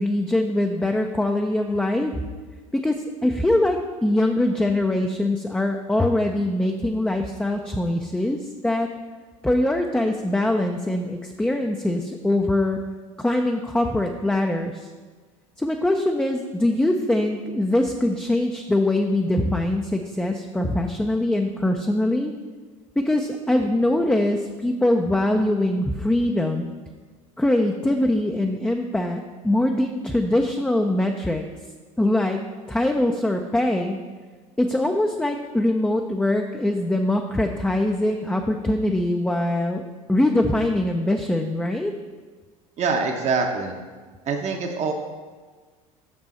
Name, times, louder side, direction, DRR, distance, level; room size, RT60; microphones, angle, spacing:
voice 1, 0.0-2.1 2.7-8.9 9.4-12.8 13.2-14.9 15.6-22.3 23.0-26.7 27.4-31.4 32.0-32.4 32.7-34.0 34.6-39.8 40.1-41.9, left 1 dB, 5° left, 3 dB, 0.4 m, -23 dB
voice 2, 42.8-43.7 44.3-44.9, right 4 dB, 40° right, 3 dB, 0.8 m, -24 dB
6.3 x 6.2 x 4.2 m, 1.4 s
hypercardioid pair, 70°, 18 cm